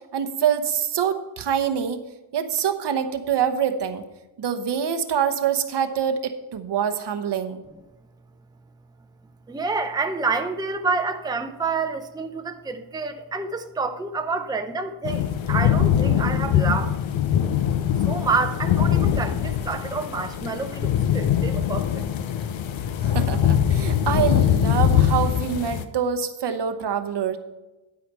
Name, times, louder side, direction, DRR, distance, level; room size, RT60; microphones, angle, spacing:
voice 1, 0.0-2.0 2.3-4.0 4.4-7.6 23.0-27.4, right 8 dB, 60° right, 9 dB, 0.9 m, -25 dB
voice 2, 9.5-17.0 18.0-22.0, right 4 dB, 10° right, 6 dB, 0.6 m, -28 dB
sound 1, 15.0-25.9, left 9 dB, 70° left, 0.9 m, -22 dB
11.5 x 5.0 x 5.4 m, 1.1 s
cardioid pair, 110°, 48 cm